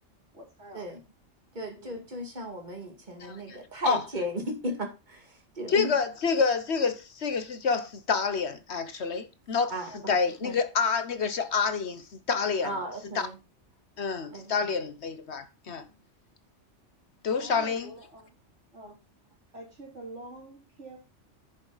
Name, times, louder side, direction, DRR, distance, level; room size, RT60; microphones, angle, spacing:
voice 1, 0.3-0.9 1.8-2.1 9.9-10.2 15.8-16.0 17.4-18.3 18.7-19.0 19.5-21.0, right 1 dB, 70° right, 3.9 m, -46 dB
voice 2, 1.5-5.9 9.7-10.6 12.6-13.4 14.3-14.5, equal, 40° right, 2.3 m, -35 dB
voice 3, 3.2-4.0 5.7-9.7 10.1-12.7 13.1-13.3 14.0-15.9 17.2-17.9, left 5 dB, 60° left, 1.3 m, -28 dB
10.5 x 7.1 x 4.0 m
omnidirectional pair, 1.3 m